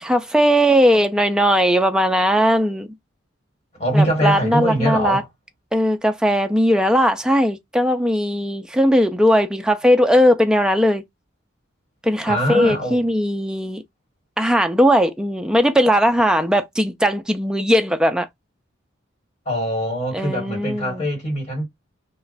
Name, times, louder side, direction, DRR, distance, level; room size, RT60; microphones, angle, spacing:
voice 1, 0.0-2.9 3.9-5.2 5.7-11.0 12.0-13.8 14.4-18.3 20.1-21.1, equal, 5° right, 0.4 m, -18 dB
voice 2, 3.7-5.2 12.2-13.0 19.4-21.6, equal, 35° left, 1.6 m, -22 dB
2.4 x 2.1 x 3.9 m
head